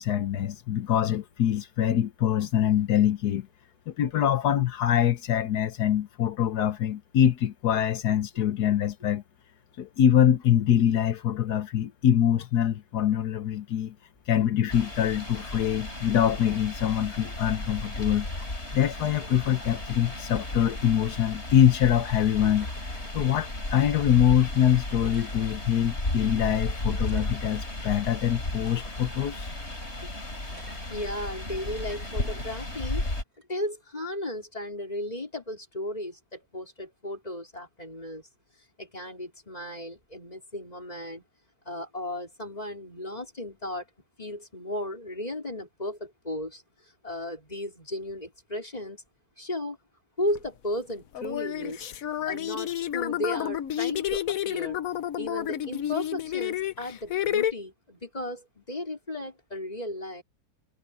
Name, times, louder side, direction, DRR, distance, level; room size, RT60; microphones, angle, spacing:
voice 1, 0.0-3.5 3.9-9.2 9.8-13.9 14.3-18.3 18.7-29.5, left 10 dB, 85° left, 1.5 m, -24 dB
sound 1, 14.7-33.2, left 1 dB, 40° left, 5.4 m, -34 dB
sound 2, 20.3-20.7 21.0-21.5 22.4-23.1 24.2-24.3 24.9-25.4 26.1-26.2 26.9-27.8 28.7-29.3 30.5-30.8 31.8-32.2 33.3-33.4, right 2 dB, 75° right, 5.5 m, -53 dB
voice 2, 30.9-33.0 33.5-38.3 38.8-41.3 41.6-43.9 44.2-49.0 49.4-49.8 50.2-51.9 52.2-54.8 55.2-60.2, left 1 dB, 25° left, 4.9 m, -35 dB
sound 3, 50.4-50.5 51.1-57.5, left 11 dB, 65° left, 1.2 m, -30 dB
omnidirectional pair, 1.7 m